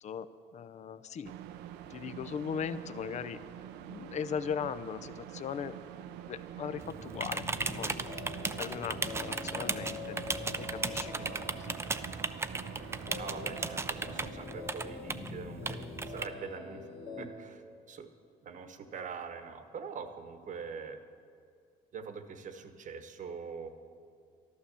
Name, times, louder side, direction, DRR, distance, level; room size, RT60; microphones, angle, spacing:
voice 1, 0.0-1.3 1.9-3.4 3.9-5.8 6.1-7.4 7.7-8.0 8.6-10.3 10.6-11.8, left 7 dB, 45° left, 14 dB, 0.6 m, -39 dB
sound 1, 1.2-14.3, right 10 dB, 90° right, 0.7 m, -46 dB
sound 2, 6.8-16.3, right 3 dB, 15° right, 0.5 m, -37 dB
sound 3, 7.1-17.3, left 3 dB, 85° left, 2.3 m, -45 dB
voice 2, 13.2-16.9 17.2-18.1 18.4-21.0 21.9-23.7, right 5 dB, 50° right, 8 dB, 1.1 m, -43 dB
13.0 x 12.0 x 6.9 m, 2.4 s
cardioid pair, 110°, 17 cm